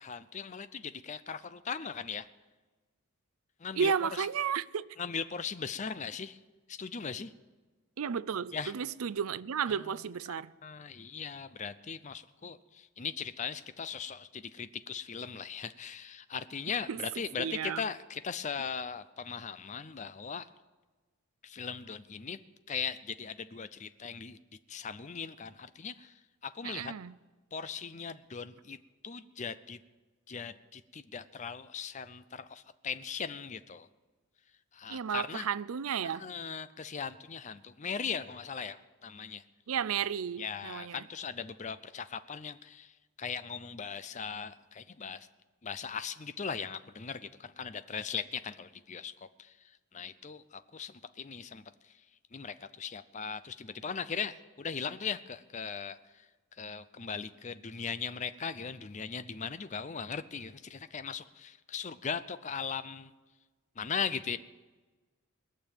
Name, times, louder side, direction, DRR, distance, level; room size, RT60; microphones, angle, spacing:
voice 1, 0.0-2.3 3.6-4.3 5.0-6.4 6.7-7.3 8.5-8.7 9.7-10.0 10.6-20.5 21.4-22.4 22.7-24.4 24.7-26.9 27.5-28.8 29.0-29.8 30.3-33.9 34.7-35.5 36.0-39.4 40.4-45.3 45.6-49.6 49.9-51.9 52.3-56.3 56.6-63.1 63.8-64.4, left 6 dB, 35° left, 0.5 m, -39 dB
voice 2, 3.7-4.9 8.0-10.5 16.9-17.0 17.4-17.8 26.6-27.1 34.9-36.3 39.7-41.0, right 7 dB, 75° right, 0.5 m, -33 dB
20.5 x 6.8 x 9.1 m
head